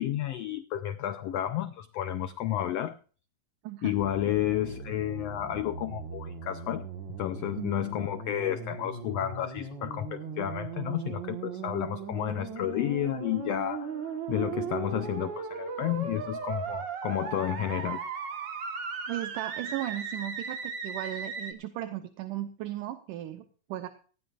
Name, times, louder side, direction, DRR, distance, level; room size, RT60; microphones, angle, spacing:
voice 1, 0.0-3.0 3.8-6.9 7.2-13.9 14.3-18.0, left 11 dB, 85° left, 10 dB, 1.4 m, -31 dB
voice 2, 3.6-4.0 7.6-7.7 19.1-23.9, right 14 dB, 80° right, 7 dB, 2.4 m, -36 dB
sound 1, 4.0-21.5, right 5 dB, 45° right, 1.6 m, -38 dB
18.5 x 15.5 x 2.5 m, 0.40 s
omnidirectional pair, 3.7 m